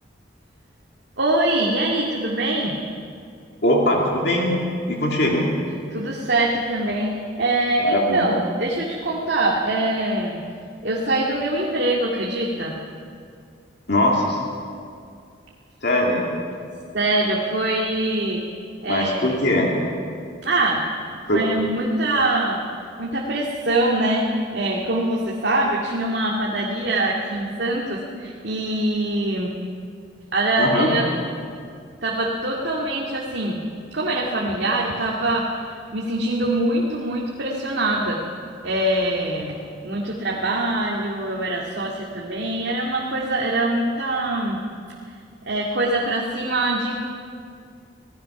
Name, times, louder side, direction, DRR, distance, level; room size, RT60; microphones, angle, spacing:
voice 1, 1.2-2.8 5.9-10.4 10.8-12.7 16.9-18.4 18.8-19.3 20.4-20.8 21.3-22.6 23.0-29.5 30.3-31.1 32.0-33.6 33.9-35.5 35.9-38.2 38.6-39.6 39.8-44.6 45.5-46.9, right 1 dB, 70° right, -3 dB, 2.2 m, -23 dB
voice 2, 3.6-4.5 4.9-5.5 7.8-8.2 13.9-14.4 15.8-16.3 18.9-19.7 21.3-21.4 30.6-30.9, left 1 dB, 60° left, -2 dB, 2.9 m, -20 dB
26.0 x 17.5 x 6.0 m, 2.3 s
head